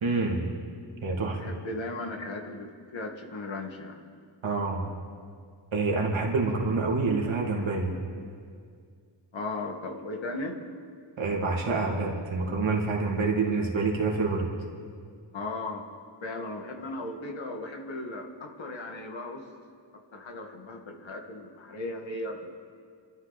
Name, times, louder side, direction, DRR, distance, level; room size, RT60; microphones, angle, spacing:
voice 1, 0.0-0.5 1.0-1.4 4.4-4.8 5.7-7.9 11.2-14.5, right 3 dB, 85° right, 0 dB, 2.6 m, -27 dB
voice 2, 1.3-4.0 9.3-10.6 15.3-15.9 16.2-19.5 20.1-22.5, left 2 dB, 75° left, 2 dB, 2.0 m, -36 dB
26.5 x 13.0 x 4.1 m, 2.1 s
wide cardioid pair, 90°, 46 cm